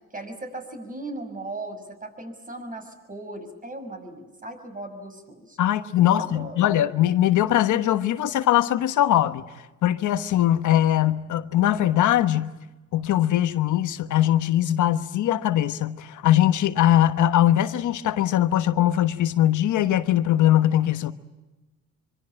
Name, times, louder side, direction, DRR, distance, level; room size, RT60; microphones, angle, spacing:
voice 1, 0.1-5.6 6.0-6.6, right 2 dB, 25° right, 6.3 m, -37 dB
voice 2, 5.6-9.5 9.8-12.5 12.9-21.1, left 12 dB, 75° left, 1.2 m, -21 dB
25.0 x 24.0 x 8.9 m
cardioid pair, 90°, 30 cm